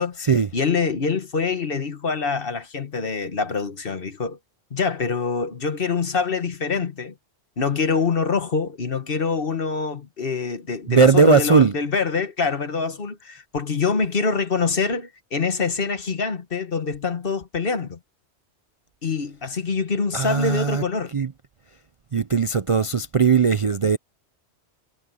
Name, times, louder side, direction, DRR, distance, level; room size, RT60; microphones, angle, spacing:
voice 1, 0.0-4.4 4.7-7.1 7.6-18.0 19.0-21.1, left 5 dB, 50° left, 1.5 m, -25 dB
voice 2, 10.9-11.7 20.1-20.8 21.1-21.3 22.1-24.0, right 5 dB, 40° right, 0.5 m, -18 dB
omnidirectional pair, 1.2 m